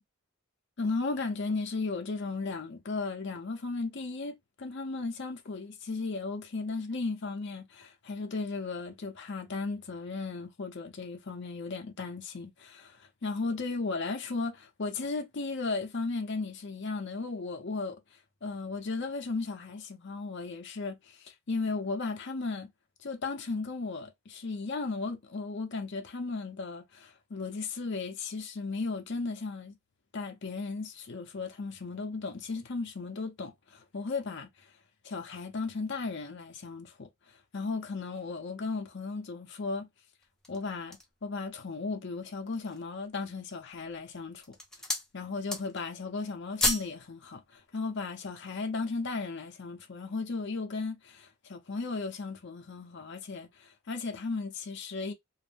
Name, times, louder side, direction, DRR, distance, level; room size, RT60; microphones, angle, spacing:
voice 1, 0.8-18.0 18.4-22.7 23.0-29.8 30.1-34.5 35.0-37.1 37.5-39.9 40.5-44.6 45.1-55.1, left 3 dB, 50° left, 0.6 m, -35 dB
sound 1, 40.2-41.2 41.8-41.9 42.4-42.9 43.6-44.0 44.3-45.1 45.4-45.9 46.2-47.0 47.3-47.4, left 2 dB, 5° left, 0.4 m, -32 dB
2.5 x 2.0 x 3.3 m
head